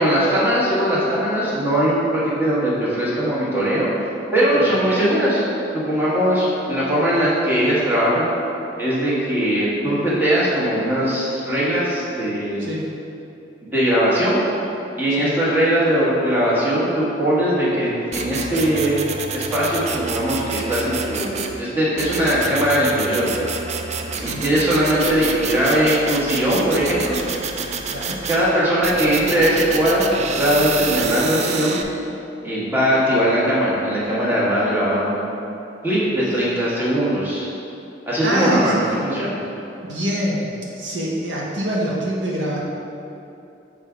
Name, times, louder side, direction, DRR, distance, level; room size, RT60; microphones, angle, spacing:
voice 1, 0.0-5.4 5.7-8.3 8.8-12.6 13.6-14.4 15.0-18.9 19.3-23.5 24.2-27.2 28.3-31.8 32.4-35.2 35.8-37.5 38.0-39.4, equal, 10° right, -8 dB, 1.4 m, -20 dB
sound 1, 18.1-21.6 22.0-28.4 28.8-31.8, right 5 dB, 35° right, 0.4 m, -28 dB
voice 2, 27.9-28.2 38.2-38.7 39.8-40.5 40.7-42.6, equal, 75° right, -4 dB, 0.9 m, -25 dB
6.6 x 3.5 x 5.0 m, 2.8 s
head